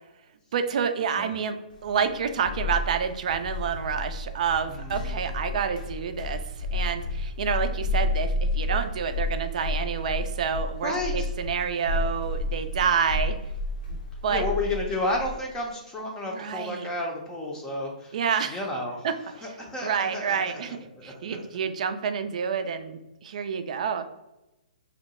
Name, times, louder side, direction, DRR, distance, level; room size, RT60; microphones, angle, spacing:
voice 1, 0.5-1.6 1.8-6.4 6.7-13.4 13.9-14.0 14.2-14.4 16.3-16.9 18.1-18.6 19.0-19.1 19.8-20.8 21.0-24.0, right 6 dB, 55° right, 8 dB, 0.4 m, -28 dB
sound 1, 1.9-15.3, left 2 dB, 70° left, 0.8 m, -31 dB
voice 2, 4.7-5.3 10.8-11.3 14.3-18.2 18.5-19.1 19.3-20.6 21.0-21.4, left 2 dB, 15° left, -1 dB, 0.6 m, -32 dB
2.8 x 2.1 x 4.1 m, 0.96 s
figure-of-eight pair, 130°, 5 cm